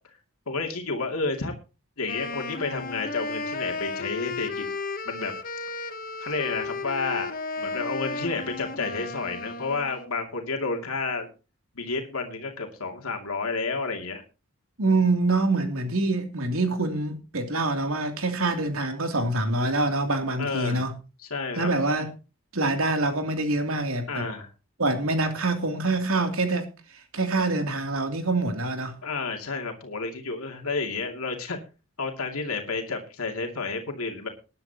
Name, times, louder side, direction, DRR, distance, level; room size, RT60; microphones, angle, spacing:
voice 1, 0.5-1.5 2.0-4.7 5.1-5.3 6.2-11.3 11.8-14.2 20.4-20.9 21.2-21.7 24.1-24.5 29.0-31.6 32.0-34.3, left 4 dB, 85° left, 3 dB, 2.6 m, -30 dB
Wind instrument woodwind instrument, 2.1-10.2, left 3 dB, 40° left, 1.1 m, -34 dB
voice 2, 14.8-20.9 21.5-22.1 22.5-24.3 24.8-29.0, right 2 dB, 75° right, 5 dB, 2.9 m, -25 dB
20.5 x 10.5 x 2.9 m, 0.32 s
head